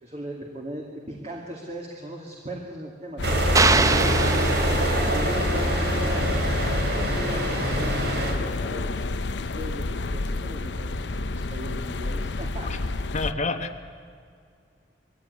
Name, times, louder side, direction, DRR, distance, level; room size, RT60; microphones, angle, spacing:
voice 1, 0.0-8.9 9.2-12.7, right 1 dB, 40° right, -1 dB, 2.4 m, -39 dB
sound 1, 3.2-13.3, left 2 dB, 80° left, 0.8 m, -29 dB
sound 2, 3.2-8.3, right 1 dB, 65° right, 3.4 m, -25 dB
sound 3, 3.5-5.3, right 3 dB, 20° right, 0.6 m, -23 dB
voice 2, 13.1-13.9, left 3 dB, 40° left, 5 dB, 1.0 m, -29 dB
23.0 x 16.5 x 9.7 m, 2.3 s
head